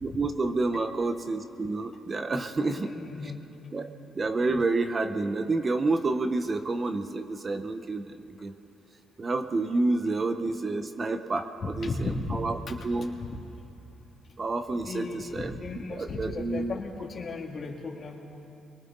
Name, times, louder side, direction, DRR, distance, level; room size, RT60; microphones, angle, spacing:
voice 1, 0.0-2.9 3.7-3.9 4.1-8.5 9.2-11.9 12.3-12.6 12.8-13.2 14.4-15.5 15.9-16.8, right 3 dB, 35° right, 8 dB, 1.1 m, -29 dB
voice 2, 2.6-3.4 10.0-10.2 11.6-12.8 13.3-13.4 14.7-18.2, left 3 dB, 45° left, 0 dB, 2.9 m, -35 dB
29.0 x 23.5 x 4.1 m, 2.8 s
cardioid pair, 90°, 0 cm